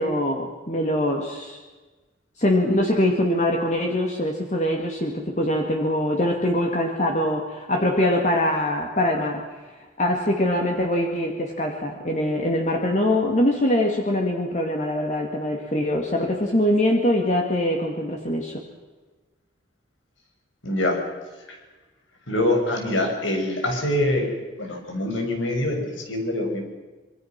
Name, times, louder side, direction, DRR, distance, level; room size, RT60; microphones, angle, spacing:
voice 1, 0.0-1.6 2.4-9.4 10.0-18.6, left 1 dB, 35° left, 1 dB, 2.3 m, -23 dB
voice 2, 20.6-21.0 22.3-24.3 24.6-26.6, left 1 dB, 85° left, 2 dB, 6.6 m, -24 dB
26.5 x 23.5 x 6.1 m, 1.3 s
head